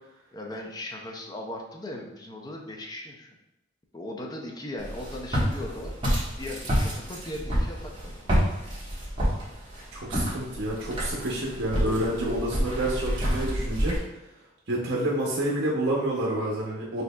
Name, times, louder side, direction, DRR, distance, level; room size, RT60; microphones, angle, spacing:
voice 1, 0.3-3.3 3.9-8.4, left 1 dB, 20° left, 1 dB, 0.5 m, -38 dB
Walk footsteps, 4.8-14.0, equal, 25° right, 1.3 m, -28 dB
voice 2, 9.9-14.0 14.7-17.0, right 1 dB, 60° right, -4 dB, 0.7 m, -28 dB
6.2 x 2.7 x 2.3 m, 0.93 s
head